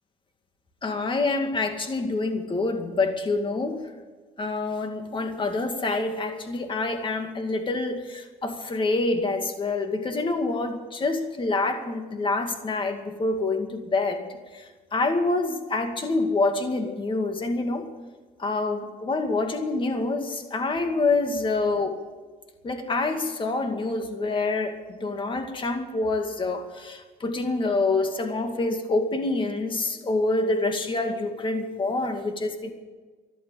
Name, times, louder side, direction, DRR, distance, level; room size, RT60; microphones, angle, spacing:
voice 1, 0.8-3.8 4.4-17.9 18.4-22.0 22.6-32.7, left 3 dB, 30° left, 5 dB, 2.2 m, -27 dB
14.5 x 11.5 x 8.1 m, 1.3 s
cardioid pair, 110°, 17 cm